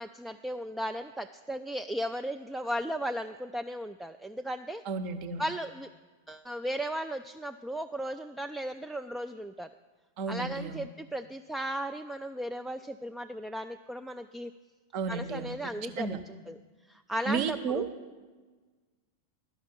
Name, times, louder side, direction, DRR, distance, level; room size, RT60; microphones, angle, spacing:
voice 1, 0.0-4.8 5.4-5.9 6.3-9.7 10.3-14.5 15.1-16.6 16.9-17.8, equal, 5° right, 7 dB, 0.3 m, -36 dB
voice 2, 4.8-5.5 10.2-10.9 14.9-15.6 16.0-16.2 17.3-17.9, right 5 dB, 40° right, 11 dB, 0.8 m, -32 dB
11.5 x 5.7 x 8.5 m, 1.4 s
figure-of-eight pair, 90°, 0 cm